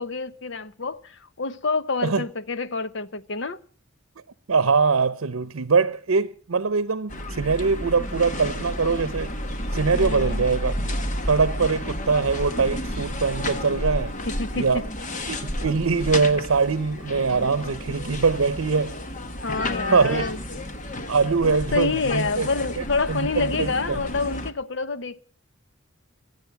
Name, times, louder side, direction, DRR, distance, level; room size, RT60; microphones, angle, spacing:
voice 1, 0.0-3.6 9.9-10.4 14.3-14.9 19.4-20.4 21.4-25.2, left 3 dB, 60° left, 0.9 m, -28 dB
voice 2, 4.5-9.3 9.7-10.8 11.3-14.2 14.5-14.8 15.3-19.0 19.9-20.2 21.1-22.5 23.1-24.0, right 4 dB, 85° right, 0.7 m, -22 dB
sound 1, 7.1-24.5, left 1 dB, 35° left, 1.3 m, -31 dB
24.5 x 8.8 x 5.9 m
head